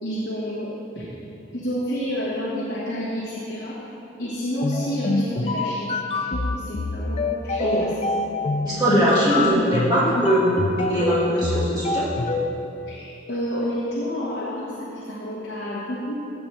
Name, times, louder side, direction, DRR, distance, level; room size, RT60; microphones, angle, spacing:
voice 1, 0.0-0.7 0.9-1.1 1.5-3.8 4.2-5.9 6.3-7.9 12.9-16.1, equal, 55° left, -7 dB, 1.3 m, -29 dB
sound 1, 4.6-12.5, left 2 dB, 30° left, 0.4 m, -26 dB
voice 2, 8.7-12.0, equal, 20° right, -9 dB, 1.9 m, -21 dB
14.5 x 7.3 x 3.3 m, 3.0 s
head